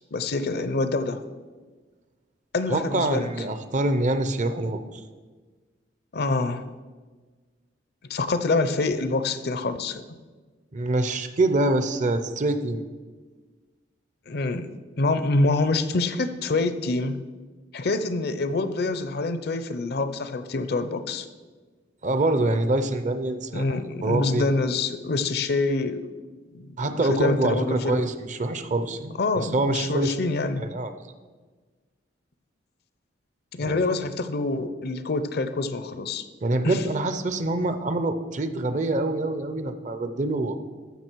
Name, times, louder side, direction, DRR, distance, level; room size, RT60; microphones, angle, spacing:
voice 1, 0.1-1.2 2.5-3.3 6.1-6.7 8.1-10.0 14.3-14.7 15.0-17.2 17.7-21.3 23.5-26.1 26.5-28.1 29.2-30.6 33.5-36.2 36.6-36.8, left 3 dB, 55° left, 11 dB, 0.6 m, -26 dB
voice 2, 2.7-5.0 10.7-12.8 22.0-24.5 26.8-30.1 30.6-30.9 33.6-33.9 36.4-40.6, right 2 dB, 40° right, 10 dB, 0.6 m, -25 dB
14.0 x 6.2 x 4.6 m, 1.4 s
head